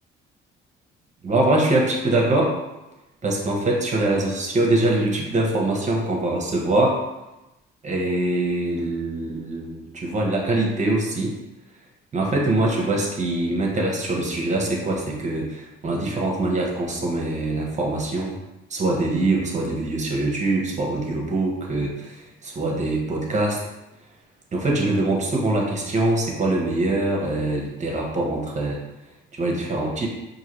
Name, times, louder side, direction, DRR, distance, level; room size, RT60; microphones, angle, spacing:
voice 1, 1.2-2.6 3.2-7.0 7.8-11.3 12.1-18.4 18.7-23.6 24.5-28.8 29.3-30.1, right 2 dB, 35° right, -1 dB, 1.1 m, -23 dB
4.6 x 2.7 x 3.1 m, 0.99 s
cardioid pair, 90°, 20 cm